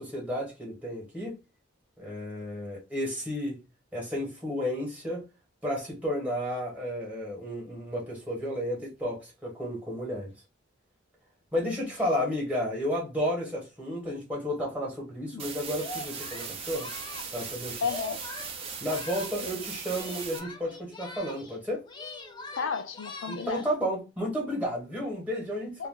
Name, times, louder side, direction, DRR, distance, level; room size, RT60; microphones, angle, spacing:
voice 1, 0.0-1.4 2.0-3.6 3.9-5.2 5.6-10.3 11.5-16.9 17.3-17.8 18.8-21.8 23.3-25.9, equal, 5° right, 1.2 m, -32 dB
sound 1, 15.4-20.4, right 6 dB, 30° right, 0.5 m, -39 dB
Singing, 15.7-19.5 19.8-21.6 21.8-23.7, left 2 dB, 25° left, 0.5 m, -43 dB
voice 2, 17.8-18.2 19.4-19.7 22.6-23.6 25.8-25.9, left 5 dB, 85° left, 0.5 m, -33 dB
2.4 x 2.1 x 3.6 m
head